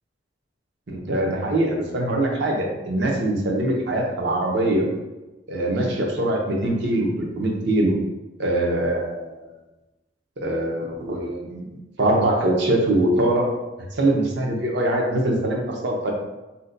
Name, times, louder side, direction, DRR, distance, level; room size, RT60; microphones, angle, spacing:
voice 1, 0.9-4.9 5.5-8.0 8.4-9.4 10.4-11.7 12.0-13.5 14.0-16.1, right 1 dB, 65° right, -1 dB, 0.6 m, -23 dB
2.7 x 2.1 x 3.8 m, 1.1 s
head